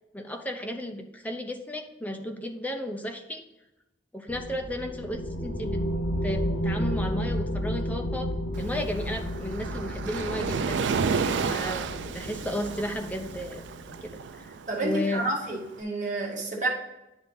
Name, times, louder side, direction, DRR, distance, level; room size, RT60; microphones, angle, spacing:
voice 1, 0.1-3.4 4.1-5.9 6.2-8.3 8.6-11.2 11.5-13.6 14.0-15.3, left 1 dB, 10° left, 4 dB, 0.6 m, -34 dB
sound 1, 4.3-14.3, equal, 90° left, 1.0 m, -32 dB
Waves surf, 8.5-15.7, right 5 dB, 80° right, 0.4 m, -32 dB
voice 2, 14.7-16.7, right 2 dB, 45° right, -1 dB, 1.6 m, -29 dB
9.8 x 3.3 x 3.9 m, 0.97 s
head